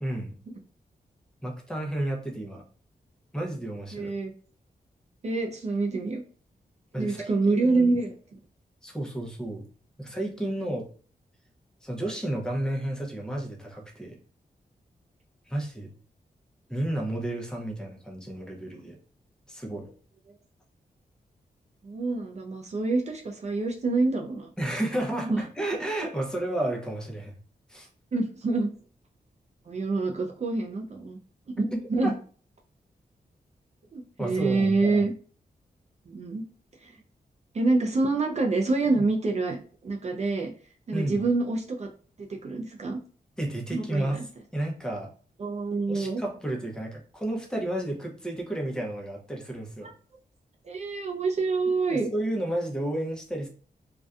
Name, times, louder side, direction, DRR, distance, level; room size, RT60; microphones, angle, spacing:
voice 1, 0.0-0.4 1.4-2.6 3.3-4.1 6.9-7.9 8.8-9.7 10.0-10.9 11.8-14.2 15.5-15.9 16.7-19.0 19.5-19.9 24.6-27.4 27.7-27.9 31.7-32.1 34.2-35.0 38.9-39.0 40.9-41.2 43.4-44.2 44.5-45.1 45.9-49.9 51.9-53.5, right 1 dB, 5° left, 0 dB, 0.7 m, -32 dB
voice 2, 3.9-4.3 5.2-6.2 6.9-8.1 21.8-24.5 25.1-25.4 28.1-28.7 29.7-31.2 31.5-32.2 33.9-35.1 36.1-36.4 36.8-37.0 37.5-40.5 40.9-41.9 42.2-43.0 43.7-44.2 45.4-46.2 49.8-49.9 50.6-52.1, right 3 dB, 45° right, 2 dB, 0.4 m, -27 dB
2.5 x 2.2 x 2.3 m, 0.42 s
cardioid pair, 80°, 16 cm